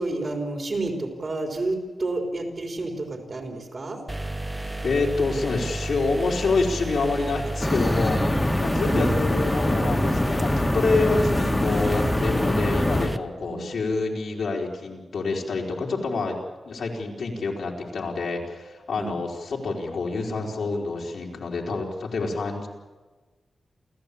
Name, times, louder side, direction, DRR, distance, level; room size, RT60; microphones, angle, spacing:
voice 1, 0.0-4.0 8.8-9.1 13.4-13.7 18.9-19.1, right 2 dB, 45° right, 2 dB, 4.0 m, -30 dB
sound 1, 4.1-13.2, right 2 dB, 10° right, 0.7 m, -32 dB
voice 2, 4.8-8.2 8.6-16.4 16.6-22.7, left 3 dB, 80° left, -2 dB, 4.2 m, -27 dB
sound 2, 7.6-13.1, left 1 dB, 15° left, 2.0 m, -24 dB
29.0 x 14.5 x 8.6 m, 1.3 s
wide cardioid pair, 135°, 0 cm